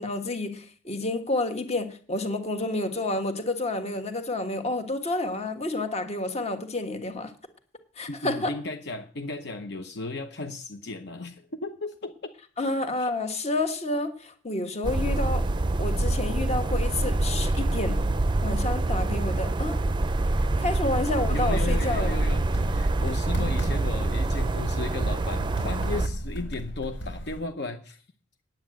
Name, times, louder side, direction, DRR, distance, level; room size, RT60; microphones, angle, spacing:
voice 1, 0.0-7.3 8.0-8.5 12.6-15.4 15.8-18.0 18.4-19.8 20.6-22.2, left 2 dB, 35° left, 7 dB, 1.4 m, -29 dB
voice 2, 8.1-12.3 13.0-13.1 21.3-28.0, left 3 dB, 60° left, 6 dB, 0.8 m, -35 dB
sound 1, 14.8-26.1, right 2 dB, 25° right, 0.5 m, -26 dB
sound 2, 21.9-27.4, equal, 75° left, 4.2 m, -34 dB
9.4 x 9.1 x 7.6 m, 0.42 s
head